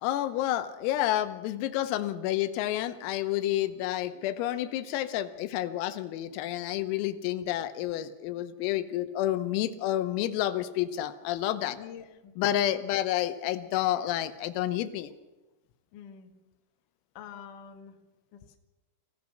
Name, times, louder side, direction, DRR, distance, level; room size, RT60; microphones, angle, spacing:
voice 1, 0.0-11.8 12.4-15.1, left 13 dB, 85° left, 11 dB, 3.7 m, -29 dB
voice 2, 11.8-12.3 15.9-16.3 17.2-17.9 18.3-18.6, left 8 dB, 60° left, 4 dB, 2.4 m, -46 dB
26.0 x 15.5 x 6.4 m, 1.1 s
omnidirectional pair, 5.9 m